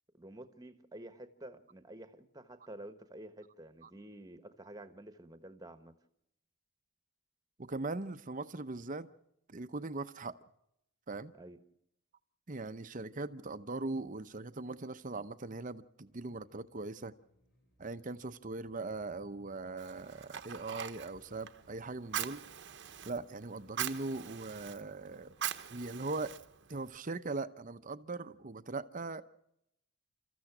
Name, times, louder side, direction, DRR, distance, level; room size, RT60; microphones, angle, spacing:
voice 1, 0.2-5.9 11.3-11.6, right 1 dB, 20° right, 1.3 m, -50 dB
voice 2, 7.6-9.1 9.5-10.3 11.1-11.3 12.5-17.1 17.8-22.4 23.0-25.3 25.7-26.3 26.7-29.2, right 3 dB, 40° right, 0.8 m, -40 dB
sound 1, 16.1-23.4, equal, 50° left, 6.0 m, -73 dB
Fire, 19.8-27.0, right 9 dB, 60° right, 1.0 m, -43 dB
30.0 x 14.5 x 6.0 m
head